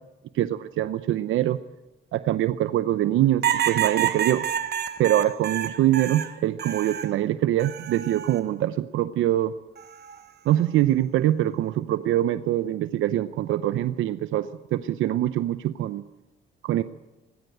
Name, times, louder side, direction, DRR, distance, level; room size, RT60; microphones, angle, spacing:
voice 1, 0.3-1.6 2.1-4.5 5.0-9.5 10.4-16.0 16.6-16.8, right 13 dB, 80° right, 13 dB, 0.7 m, -24 dB
sound 1, 3.4-7.1 7.6-8.4 9.8-10.2, right 10 dB, 55° right, 1.4 m, -28 dB
19.0 x 17.0 x 8.1 m, 1.0 s
cardioid pair, 90°, 20 cm